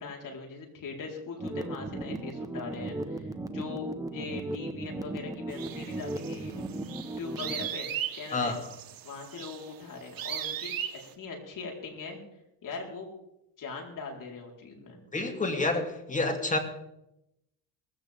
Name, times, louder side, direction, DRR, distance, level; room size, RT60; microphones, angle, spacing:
voice 1, 0.0-6.6 7.2-8.6 9.0-10.7 11.2-12.2 12.6-13.1 13.6-15.0, left 4 dB, 50° left, 1 dB, 4.6 m, -41 dB
sound 1, 1.4-7.7, right 2 dB, 10° right, 1.2 m, -36 dB
sound 2, 5.5-11.1, right 10 dB, 55° right, 1.9 m, -38 dB
voice 2, 15.1-16.6, left 2 dB, 20° left, 5 dB, 2.6 m, -28 dB
19.0 x 16.0 x 3.7 m, 0.85 s
supercardioid pair, 95°, 41 cm